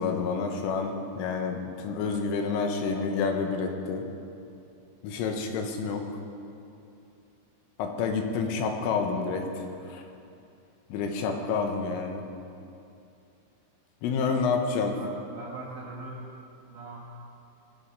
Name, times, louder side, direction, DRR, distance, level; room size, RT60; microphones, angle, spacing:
voice 1, 0.0-4.1 5.0-6.1 7.8-10.0 10.9-12.2 14.0-14.9, left 5 dB, 90° left, 4 dB, 3.6 m, -29 dB
voice 2, 14.2-14.6 15.0-16.3 16.7-17.1, right 3 dB, 75° right, -4 dB, 2.1 m, -42 dB
20.0 x 7.4 x 5.4 m, 2.6 s
omnidirectional pair, 5.7 m